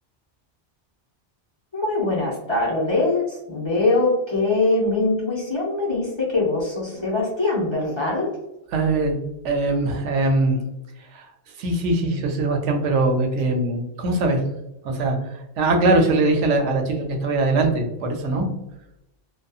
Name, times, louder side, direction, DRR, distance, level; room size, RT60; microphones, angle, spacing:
voice 1, 1.7-8.3, left 2 dB, 30° left, -5 dB, 0.6 m, -22 dB
voice 2, 8.7-9.1 9.4-10.6 11.1-11.3 11.6-14.4 14.8-15.2 15.6-18.5, right 2 dB, 90° right, 3 dB, 0.9 m, -21 dB
2.6 x 2.3 x 2.3 m, 0.86 s
omnidirectional pair, 1.2 m